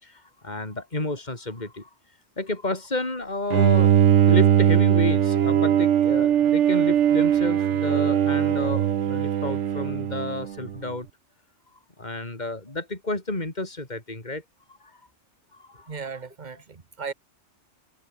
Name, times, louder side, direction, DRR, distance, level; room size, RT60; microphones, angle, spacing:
voice 1, 0.0-1.9 2.4-3.9 4.2-11.1 12.0-14.4 14.8-15.0 15.5-15.9, left 2 dB, 35° left, 4.1 m, -31 dB
Bowed string instrument, 3.5-10.8, right 10 dB, 75° right, 1.1 m, -20 dB
voice 2, 15.9-17.1, right 5 dB, 40° right, 1.5 m, -36 dB
omnidirectional pair, 1.2 m